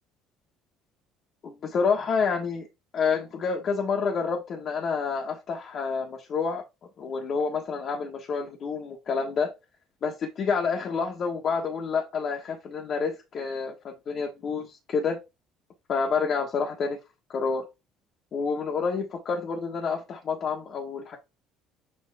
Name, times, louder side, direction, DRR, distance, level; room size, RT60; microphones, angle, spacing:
voice 1, 1.4-2.7 2.9-6.6 7.0-9.5 10.0-15.2 15.9-17.0 17.3-17.7 18.3-21.2, left 5 dB, 50° left, 1 dB, 1.4 m, -28 dB
7.2 x 4.0 x 3.5 m, 0.25 s
supercardioid pair, 80°, 0 cm